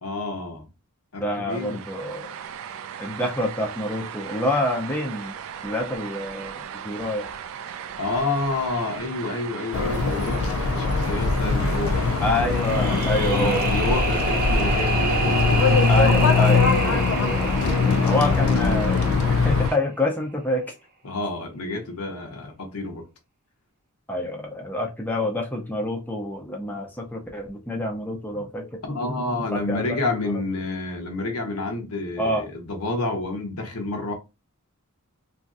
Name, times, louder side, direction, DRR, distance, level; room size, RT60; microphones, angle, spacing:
voice 1, 0.0-0.7 1.1-1.8 8.0-12.3 13.2-15.9 17.4-18.4 21.0-23.0 28.3-28.5 28.8-34.1, left 2 dB, 85° left, 0.8 m, -29 dB
voice 2, 1.2-2.3 3.0-5.3 5.6-7.3 12.2-13.7 15.9-20.7 24.1-28.6 29.5-30.0 32.2-32.5, left 1 dB, 10° left, 0.4 m, -27 dB
sound 1, 1.5-19.8, right 8 dB, 65° right, 0.3 m, -37 dB
sound 2, 9.7-19.7, left 4 dB, 70° left, 0.4 m, -21 dB
sound 3, 12.5-19.5, right 2 dB, 40° right, 0.7 m, -28 dB
3.0 x 2.6 x 2.4 m
head